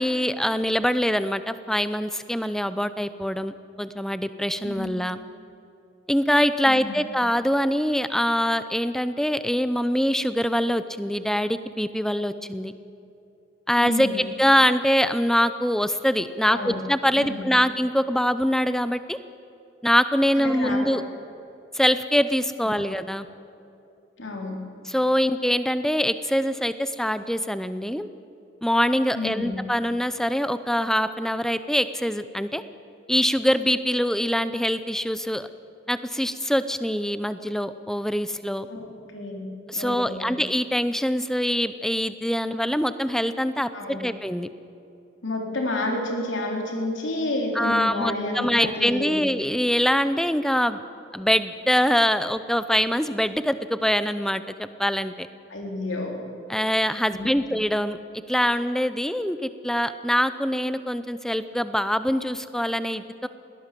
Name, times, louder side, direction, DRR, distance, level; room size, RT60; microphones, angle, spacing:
voice 1, 0.0-5.2 6.1-12.7 13.7-19.2 19.8-21.0 21.7-23.3 24.9-28.1 28.6-32.6 33.1-35.5 35.9-38.7 39.7-44.5 47.6-50.8 51.1-55.3 56.5-58.0 58.3-63.3, equal, 5° left, 12 dB, 0.6 m, -24 dB
voice 2, 4.6-4.9 6.6-7.1 13.8-14.2 16.4-16.8 17.2-17.5 20.4-21.0 24.2-24.6 29.2-29.6 38.7-38.9 39.1-40.4 43.7-44.0 45.2-49.3 55.5-56.3 57.1-57.5, left 2 dB, 90° left, 1 dB, 3.7 m, -30 dB
21.0 x 17.5 x 7.6 m, 2.8 s
head